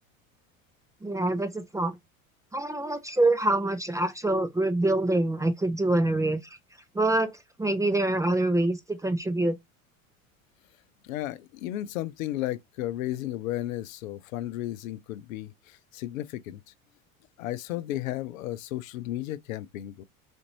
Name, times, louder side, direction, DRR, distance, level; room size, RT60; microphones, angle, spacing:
voice 1, 1.0-2.0 2.5-6.4 6.9-9.6, right 2 dB, 10° right, 0.4 m, -25 dB
voice 2, 11.0-16.7 17.4-20.0, left 14 dB, 75° left, 0.6 m, -34 dB
4.2 x 2.5 x 3.0 m
hypercardioid pair, 85°, 41 cm